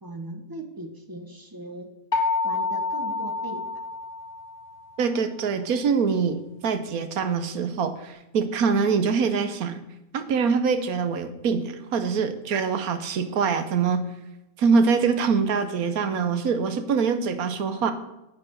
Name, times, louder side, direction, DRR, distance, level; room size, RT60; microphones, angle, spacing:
voice 1, 0.0-1.9 2.4-3.6, right 1 dB, 15° right, 5 dB, 1.3 m, -38 dB
sound 1, 2.1-4.9, left 3 dB, 55° left, 1.3 m, -28 dB
voice 2, 5.0-9.8 10.1-14.0 14.6-17.9, right 5 dB, 80° right, 9 dB, 1.4 m, -24 dB
9.8 x 9.1 x 6.4 m, 0.93 s
omnidirectional pair, 1.5 m